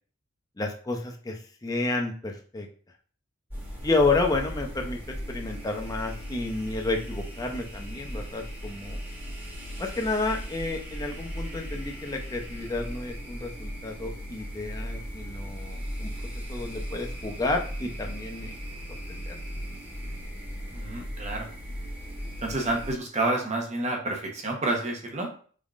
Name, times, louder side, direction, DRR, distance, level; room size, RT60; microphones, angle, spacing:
voice 1, 0.6-2.7 3.8-5.0 5.3-9.0 9.8-16.1 16.5-18.6 19.1-19.3, left 3 dB, 20° left, 2 dB, 0.6 m, -30 dB
sound 1, 3.5-22.9, equal, 10° right, 1.4 m, -37 dB
voice 2, 20.7-21.5 22.4-25.3, right 2 dB, 35° right, 1 dB, 0.9 m, -29 dB
3.7 x 3.5 x 2.4 m, 0.43 s
head